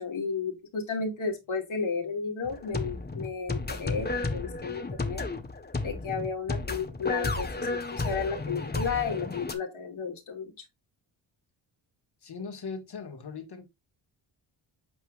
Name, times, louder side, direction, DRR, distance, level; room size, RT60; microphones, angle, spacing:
voice 1, 0.0-5.2 5.8-10.5, left 5 dB, 70° left, 2.5 m, -33 dB
sound 1, 2.4-9.5, left 3 dB, 20° left, 1.3 m, -33 dB
voice 2, 12.2-13.7, left 5 dB, 50° left, 2.1 m, -39 dB
8.4 x 4.4 x 2.5 m
cardioid pair, 55°, 49 cm